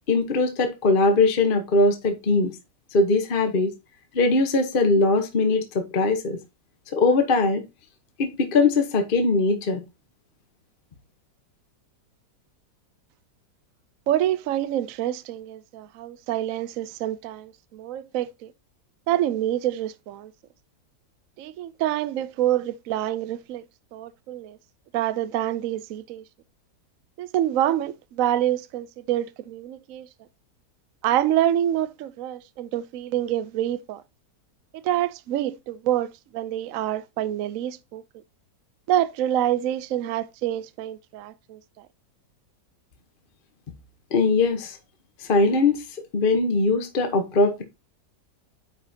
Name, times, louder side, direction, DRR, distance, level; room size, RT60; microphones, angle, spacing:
voice 1, 0.1-2.5 2.9-3.7 4.1-6.4 6.9-7.6 8.2-9.8 44.1-44.8 45.3-45.8 46.1-47.6, left 3 dB, 35° left, 1.0 m, -21 dB
voice 2, 14.1-18.5 19.1-20.3 21.4-23.6 23.9-24.6 24.9-26.2 27.2-30.1 31.0-34.0 34.7-38.0 38.9-41.9, right 12 dB, 75° right, 0.8 m, -26 dB
9.3 x 5.0 x 2.7 m
omnidirectional pair, 1.9 m